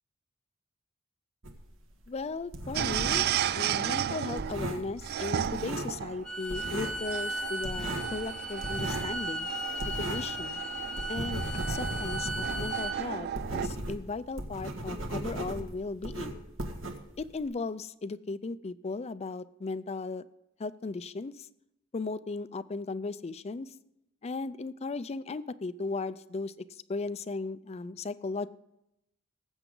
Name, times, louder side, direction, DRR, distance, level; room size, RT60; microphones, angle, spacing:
sound 1, 1.4-3.4 3.6-6.2 6.5-7.1 7.3-10.4 10.7-17.4, right 1 dB, 75° right, 1.5 m, -37 dB
voice 1, 2.1-3.3 3.6-9.5 10.0-10.6 11.1-16.4 17.2-20.2 20.6-21.3 21.9-23.7 24.2-26.5 26.9-28.5, left 3 dB, 30° left, 16 dB, 0.4 m, -36 dB
sound 2, 2.7-13.7, right 10 dB, 50° right, 0.3 m, -34 dB
Bowed string instrument, 6.2-13.0, equal, 5° left, 0.8 m, -36 dB
18.5 x 8.0 x 3.8 m, 0.85 s
head